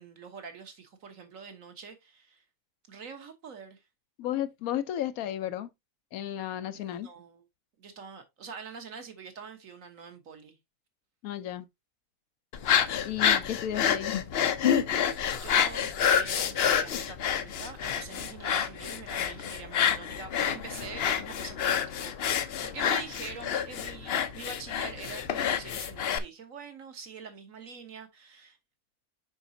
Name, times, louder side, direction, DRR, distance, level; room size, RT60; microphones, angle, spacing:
voice 1, 0.0-2.4 2.9-3.8 6.7-7.4 7.8-10.6 15.4-28.6, right 5 dB, 60° right, 1.6 m, -45 dB
voice 2, 4.2-5.7 6.1-7.1 11.2-11.7 13.0-14.2, left 11 dB, 70° left, 1.1 m, -33 dB
sound 1, 12.5-26.2, left 8 dB, 55° left, 0.7 m, -28 dB
7.0 x 5.3 x 2.7 m
omnidirectional pair, 1.6 m